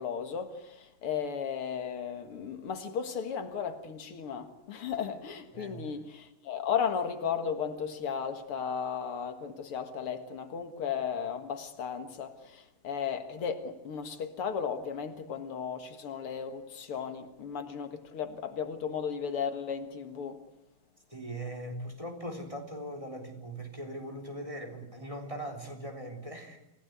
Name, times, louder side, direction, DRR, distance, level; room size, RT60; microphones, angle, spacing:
voice 1, 0.0-20.4, left 7 dB, 85° left, 2.6 m, -35 dB
voice 2, 5.5-5.9 21.1-26.6, right 1 dB, 15° right, 3.7 m, -40 dB
28.0 x 17.0 x 9.4 m
omnidirectional pair, 2.4 m